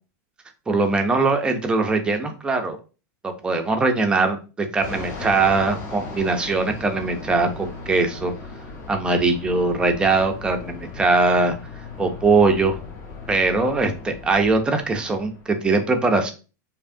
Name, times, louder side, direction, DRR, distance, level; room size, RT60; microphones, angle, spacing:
voice 1, 0.7-2.8 3.2-8.3 8.9-11.6 12.0-12.8 13.3-16.3, right 3 dB, 10° right, 5 dB, 0.5 m, -21 dB
Fixed-wing aircraft airplane, 4.8-15.7, left 3 dB, 30° left, 1.0 m, -37 dB
4.6 x 2.7 x 2.6 m, 0.33 s
supercardioid pair, 165°, 10 cm